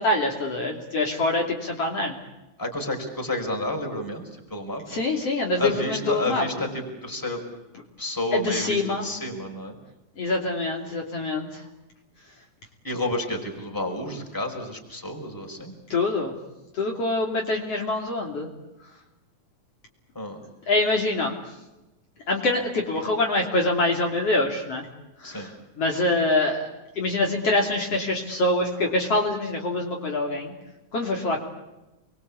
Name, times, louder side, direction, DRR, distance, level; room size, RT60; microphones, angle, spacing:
voice 1, 0.0-2.2 4.9-6.5 8.3-9.1 10.2-11.6 15.9-16.3 16.7-18.5 20.7-21.3 22.3-24.9 25.2-25.5 25.8-26.7 27.0-30.5 30.9-31.4, left 2 dB, 50° left, 0 dB, 3.9 m, -25 dB
voice 2, 2.6-4.2 4.5-5.0 5.6-7.4 8.0-9.8 12.8-15.7 20.1-20.4 25.2-25.5, left 1 dB, 5° left, 2 dB, 4.9 m, -30 dB
29.5 x 22.5 x 8.6 m, 1.0 s
omnidirectional pair, 3.6 m